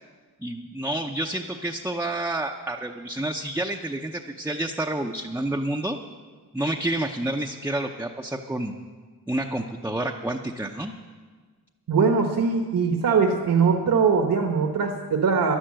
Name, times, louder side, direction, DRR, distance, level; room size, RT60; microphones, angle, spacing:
voice 1, 0.4-6.0 6.5-8.7 9.3-10.9, right 1 dB, 5° right, 2 dB, 0.6 m, -29 dB
voice 2, 11.9-15.6, right 5 dB, 60° right, 3 dB, 1.2 m, -21 dB
11.5 x 11.5 x 7.6 m, 1.5 s
wide cardioid pair, 100°, 37 cm